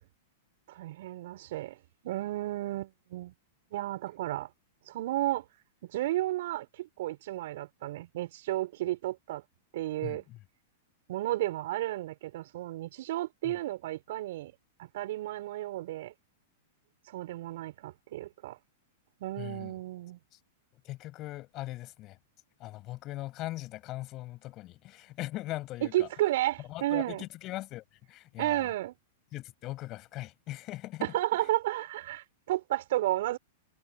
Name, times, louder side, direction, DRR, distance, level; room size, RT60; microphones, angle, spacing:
voice 1, 0.7-1.8 2.0-3.3 3.7-4.5 4.9-5.4 5.9-9.4 9.7-10.2 11.1-14.5 14.8-16.1 17.1-18.6 19.2-20.2 25.9-27.2 28.4-28.9 31.0-33.4, right 15 dB, 60° right, 4.5 m, -32 dB
voice 2, 10.0-10.4 13.4-13.5 19.4-19.7 20.3-20.4 20.7-22.2 22.6-26.1 26.6-28.7 29.3-31.5, left 17 dB, 40° left, 7.4 m, -40 dB
hypercardioid pair, 105°, 0 cm